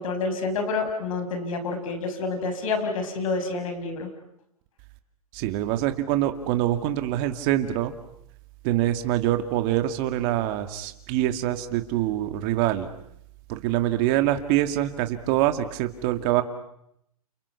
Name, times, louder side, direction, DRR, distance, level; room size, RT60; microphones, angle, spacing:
voice 1, 0.0-4.1, left 3 dB, 60° left, 7 dB, 5.9 m, -28 dB
voice 2, 5.3-7.9 8.6-12.9 13.5-16.4, right 13 dB, 40° right, 7 dB, 2.3 m, -25 dB
29.5 x 29.0 x 5.9 m, 0.75 s
hypercardioid pair, 145°, 19 cm